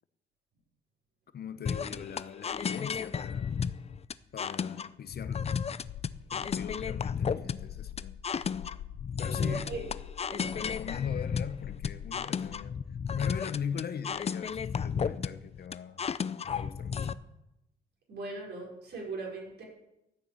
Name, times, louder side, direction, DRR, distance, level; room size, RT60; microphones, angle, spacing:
voice 1, 1.3-3.6 4.3-5.5 6.3-8.2 9.2-9.8 10.5-12.8 13.1-16.1 16.4-17.1, left 7 dB, 55° left, 0.9 m, -40 dB
sound 1, 1.7-17.1, left 6 dB, 30° left, 0.5 m, -33 dB
sound 2, 5.8-12.6, left 11 dB, 75° left, 0.6 m, -45 dB
voice 2, 9.3-9.8 10.3-10.8 18.1-19.6, right 3 dB, 55° right, 5.3 m, -40 dB
12.5 x 6.6 x 8.6 m
cardioid pair, 90°, 20 cm